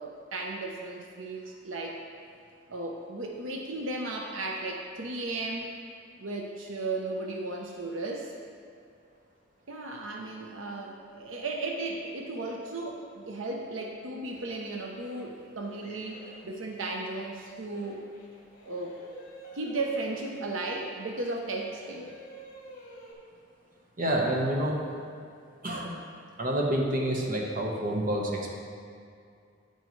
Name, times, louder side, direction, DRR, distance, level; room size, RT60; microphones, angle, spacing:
voice 1, 0.0-2.0 2.7-5.7 6.2-8.3 9.7-18.0 18.6-19.0 19.5-22.1, right 2 dB, 80° right, 1 dB, 0.8 m, -35 dB
sound 1, 14.2-14.7 15.0-15.2 15.6-16.4 16.7-17.0 17.4-20.4 20.7-20.9 21.2-23.1, equal, 45° left, 2.2 m, -50 dB
voice 2, 24.0-24.8 25.6-26.0 26.4-28.5, right 1 dB, 40° right, -1 dB, 1.2 m, -28 dB
9.3 x 9.2 x 3.2 m, 2.4 s
head